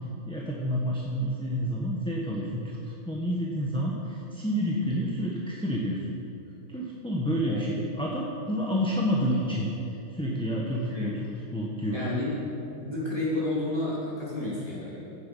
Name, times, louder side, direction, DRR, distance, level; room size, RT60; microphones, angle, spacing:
voice 1, 0.3-6.1 6.7-9.7 10.1-11.1 11.5-12.0, equal, 5° left, -4 dB, 1.0 m, -29 dB
voice 2, 11.9-12.5 12.8-15.0, left 2 dB, 15° right, -7 dB, 3.3 m, -31 dB
15.5 x 8.0 x 5.5 m, 2.9 s
omnidirectional pair, 1.6 m